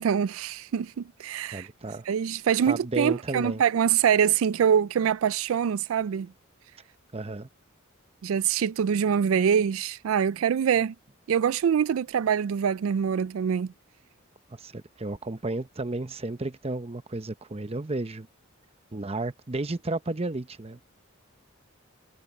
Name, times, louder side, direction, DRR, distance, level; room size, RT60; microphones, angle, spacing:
voice 1, 0.0-1.7 2.1-6.3 8.2-10.9 11.3-13.7, right 8 dB, 80° right, 0.4 m, -24 dB
voice 2, 1.5-2.0 2.7-3.6 7.1-7.5 14.5-18.3 18.9-21.0, right 2 dB, 30° right, 0.8 m, -33 dB
head